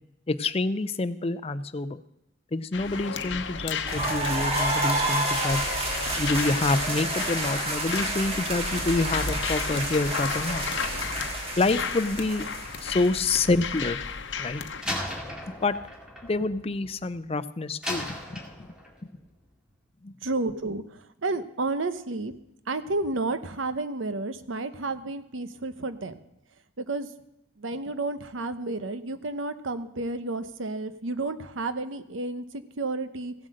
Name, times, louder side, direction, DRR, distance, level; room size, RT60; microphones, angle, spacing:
voice 1, 0.3-2.0 2.5-5.6 6.2-10.6 11.6-12.4 12.8-14.0 14.4-15.0 15.6-15.8 16.2-18.4 20.0-20.1, left 3 dB, 30° left, 12 dB, 0.5 m, -27 dB
sound 1, 2.7-14.8, left 5 dB, 70° left, 0.9 m, -33 dB
sound 2, 3.9-13.6, right 2 dB, 30° right, 2.0 m, -30 dB
Slam, 14.8-17.2 17.8-19.1, left 1 dB, 5° right, 2.0 m, -36 dB
voice 2, 20.2-22.3 22.7-26.2 26.8-27.1 27.6-33.3, right 2 dB, 90° right, 11 dB, 0.9 m, -31 dB
15.5 x 7.7 x 6.5 m, 0.85 s
head